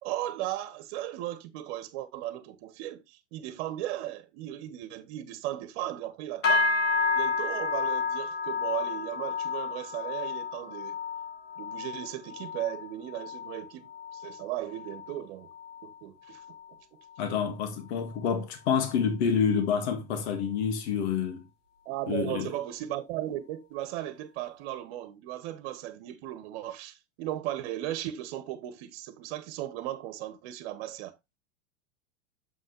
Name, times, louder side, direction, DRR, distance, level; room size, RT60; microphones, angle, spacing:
voice 1, 0.0-6.7 7.1-11.0 11.6-15.5 15.8-16.4 21.8-31.2, right 13 dB, 55° right, 1.3 m, -36 dB
sound 1, 6.4-16.0 16.3-16.7 17.1-17.4 18.0-18.1, left 4 dB, 90° left, 2.6 m, -31 dB
voice 2, 17.2-21.5 22.1-22.5, left 7 dB, 65° left, 1.8 m, -28 dB
7.5 x 5.6 x 3.1 m
hypercardioid pair, 105°, 36 cm